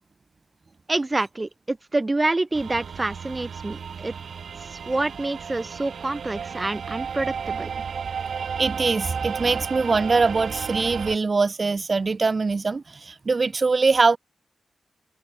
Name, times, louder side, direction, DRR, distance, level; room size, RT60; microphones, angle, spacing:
voice 1, 0.9-4.1 4.7-7.7, right 2 dB, 25° right, 1.2 m, -27 dB
sound 1, 2.5-11.2, right 6 dB, 70° right, 2.9 m, -33 dB
voice 2, 8.6-14.2, right 4 dB, 40° right, 2.6 m, -22 dB
open air
wide cardioid pair, 110°, 0 cm